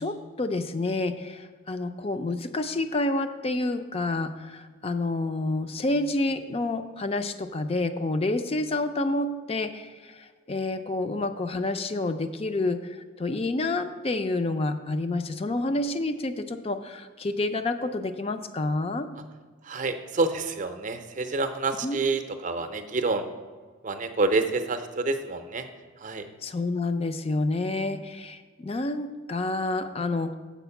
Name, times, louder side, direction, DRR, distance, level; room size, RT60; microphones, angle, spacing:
voice 1, 0.0-19.1 21.8-22.0 26.4-30.4, left 2 dB, 30° left, 9 dB, 0.4 m, -29 dB
voice 2, 19.6-23.3 23.8-25.7 26.0-26.3, right 3 dB, 40° right, 8 dB, 0.6 m, -28 dB
7.2 x 5.1 x 6.9 m, 1.5 s
head